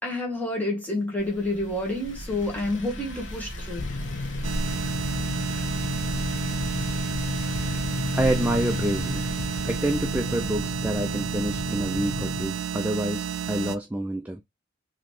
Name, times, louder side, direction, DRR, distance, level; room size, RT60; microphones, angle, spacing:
voice 1, 0.0-3.9, left 1 dB, 10° left, 1.3 m, -29 dB
sound 1, 1.2-10.6, equal, 85° left, 1.3 m, -37 dB
sound 2, 3.8-12.4, left 3 dB, 60° left, 0.5 m, -32 dB
sound 3, 4.4-13.8, right 9 dB, 85° right, 0.4 m, -31 dB
voice 2, 8.1-9.2 9.6-14.4, right 1 dB, 10° right, 0.3 m, -27 dB
3.9 x 3.0 x 3.1 m
head